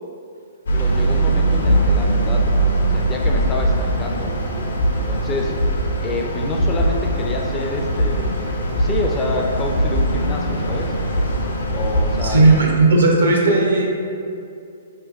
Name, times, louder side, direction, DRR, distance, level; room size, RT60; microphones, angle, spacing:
sound 1, 0.7-12.6, right 1 dB, 70° left, 0.5 m, -21 dB
voice 1, 0.7-2.5 2.9-4.3 4.9-5.6 6.0-11.0 11.7-12.5, left 2 dB, 15° left, 0 dB, 0.3 m, -28 dB
voice 2, 12.2-13.9, right 2 dB, 70° right, -1 dB, 0.6 m, -15 dB
4.4 x 3.1 x 2.3 m, 2.5 s
figure-of-eight pair, 120°, 0 cm